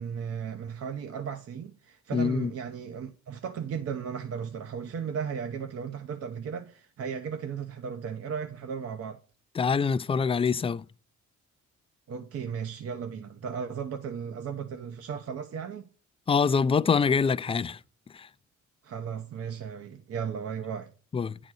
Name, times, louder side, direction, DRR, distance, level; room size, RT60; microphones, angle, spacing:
voice 1, 0.0-9.2 12.1-15.9 18.8-20.9, right 7 dB, 55° right, 0.8 m, -35 dB
voice 2, 2.1-2.5 9.6-10.8 16.3-17.8 18.1-18.3 21.1-21.4, left 5 dB, 20° left, 0.3 m, -25 dB
9.3 x 4.0 x 6.1 m
cardioid pair, 90°, 30 cm